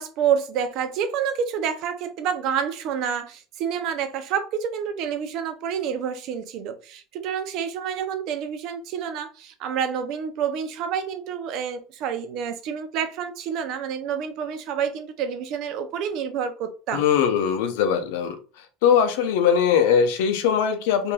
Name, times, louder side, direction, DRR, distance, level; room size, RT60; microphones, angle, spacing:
voice 1, 0.0-17.0, right 7 dB, 50° right, 0.5 m, -28 dB
voice 2, 16.9-18.4 18.8-21.1, left 7 dB, 80° left, 0.6 m, -20 dB
2.6 x 2.2 x 3.2 m
cardioid pair, 150°, 0 cm